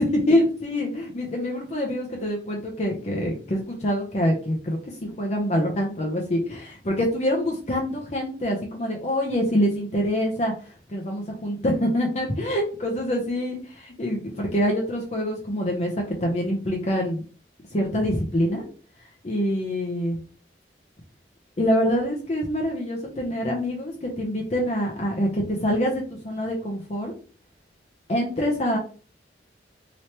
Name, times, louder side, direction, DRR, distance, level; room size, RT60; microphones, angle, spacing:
voice 1, 0.0-10.5 10.9-17.2 17.7-18.6 19.2-20.2 21.6-27.1 28.1-28.8, equal, 40° left, -1 dB, 0.7 m, -25 dB
3.2 x 3.0 x 2.9 m, 0.39 s
head